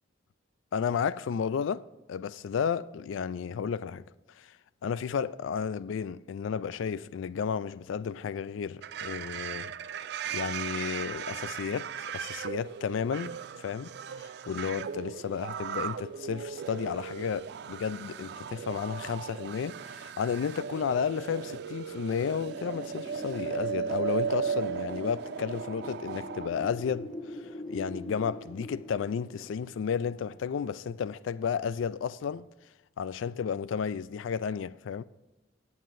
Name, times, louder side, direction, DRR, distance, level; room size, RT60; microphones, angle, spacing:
voice 1, 0.7-1.8 2.1-4.0 4.4-4.5 4.8-9.7 10.3-13.9 14.2-27.4 27.7-32.4 33.0-35.0, left 7 dB, 85° left, 0.3 m, -32 dB
sound 1, 8.8-26.5, right 7 dB, 60° right, 0.3 m, -37 dB
Wind, 22.3-31.0, left 1 dB, 35° left, 2.6 m, -44 dB
19.0 x 7.5 x 2.6 m
head